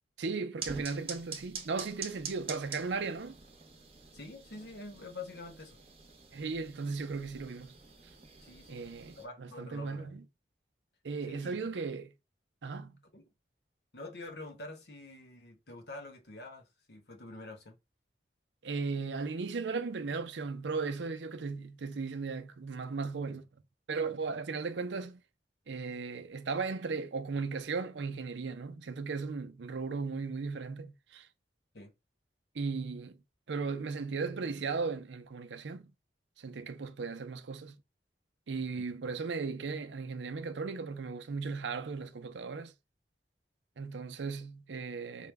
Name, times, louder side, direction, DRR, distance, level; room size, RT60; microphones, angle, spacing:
voice 1, 0.2-3.4 6.3-7.8 8.7-10.2 11.0-12.1 12.6-13.0 18.6-23.5 23.9-25.2 25.7-31.3 32.5-33.2 33.5-35.9 36.4-37.8 38.5-42.7 43.8-45.3, right 4 dB, 85° right, 0.5 m, -36 dB
sound 1, 0.6-9.2, right 5 dB, 30° right, 0.9 m, -46 dB
voice 2, 4.1-5.8 8.4-8.9 9.2-10.1 11.2-11.6 13.1-13.3 13.9-17.8 31.7-31.9 38.7-38.8, left 2 dB, 70° left, 1.0 m, -46 dB
4.9 x 2.2 x 3.3 m
head